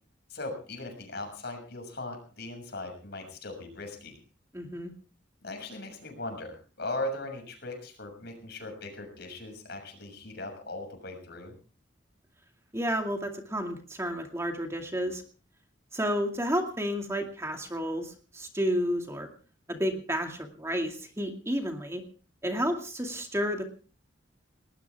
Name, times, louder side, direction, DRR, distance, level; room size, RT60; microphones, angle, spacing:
voice 1, 0.3-4.2 5.4-11.5, left 2 dB, 60° left, 5 dB, 6.6 m, -39 dB
voice 2, 4.5-4.9 12.7-15.2 15.9-19.3 19.7-22.0 22.4-23.6, equal, 15° right, 3 dB, 2.3 m, -31 dB
19.5 x 19.0 x 3.5 m, 0.39 s
head